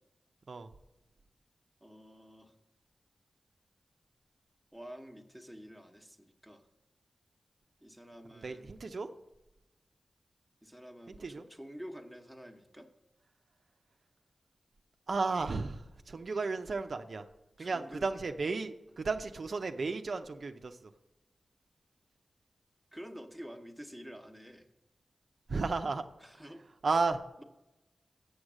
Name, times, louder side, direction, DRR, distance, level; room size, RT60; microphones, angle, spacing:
voice 1, 1.8-2.6 4.7-6.7 7.8-8.8 9.1-9.2 10.6-12.9 17.6-18.3 22.9-24.6 26.2-26.6 27.4-27.5, equal, 5° left, 4 dB, 1.1 m, -49 dB
voice 2, 8.4-9.1 11.2-11.4 15.1-17.2 17.6-20.9 25.5-26.0 26.8-27.2, right 4 dB, 65° right, 7 dB, 0.5 m, -33 dB
7.9 x 6.4 x 6.2 m, 0.96 s
cardioid pair, 60°, 0 cm